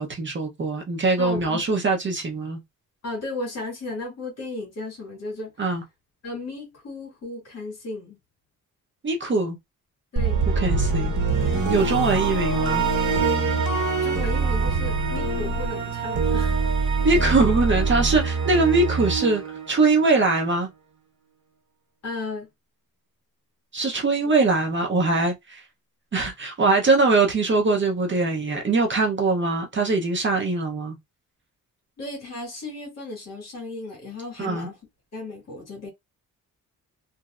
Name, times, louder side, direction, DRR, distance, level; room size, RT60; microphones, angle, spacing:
voice 1, 0.0-2.6 5.6-5.8 9.0-9.6 10.6-11.1 11.5-12.9 17.0-20.7 23.7-25.6 26.1-31.0 34.4-34.7, right 3 dB, 35° right, 0.7 m, -22 dB
voice 2, 1.2-1.6 3.0-5.5 6.2-8.2 10.1-10.4 14.0-16.6 22.0-22.5 24.2-24.3 32.0-34.8 35.1-35.9, left 2 dB, 45° left, 1.9 m, -35 dB
sound 1, 10.2-20.3, right 4 dB, 55° right, 1.5 m, -24 dB
3.1 x 2.6 x 2.4 m
wide cardioid pair, 165°, 35 cm